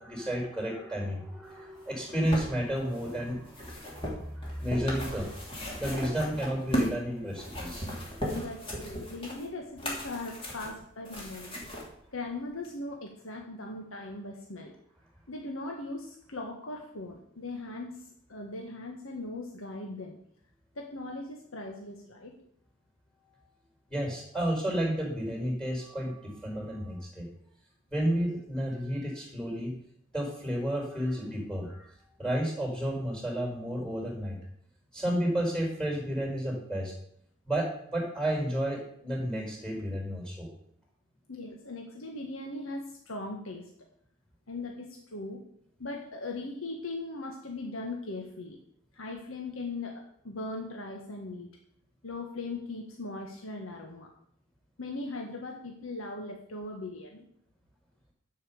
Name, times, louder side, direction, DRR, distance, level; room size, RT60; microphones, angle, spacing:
voice 1, 0.0-5.4 5.8-8.2 23.9-27.3 27.9-29.7 30.1-31.9 32.2-34.4 34.9-36.9 37.5-40.5, equal, 5° left, 0 dB, 4.4 m, -32 dB
sound 1, 1.8-7.0 7.3-11.8 12.6-12.7, equal, 25° left, 3.0 m, -36 dB
voice 2, 8.3-11.6 12.1-14.7 15.3-20.2 20.7-22.3 41.3-43.7 44.5-45.4 45.8-48.6 48.9-51.5 52.0-54.1 54.8-57.2, left 2 dB, 90° left, 1 dB, 1.5 m, -39 dB
12.0 x 5.6 x 7.0 m, 0.69 s
head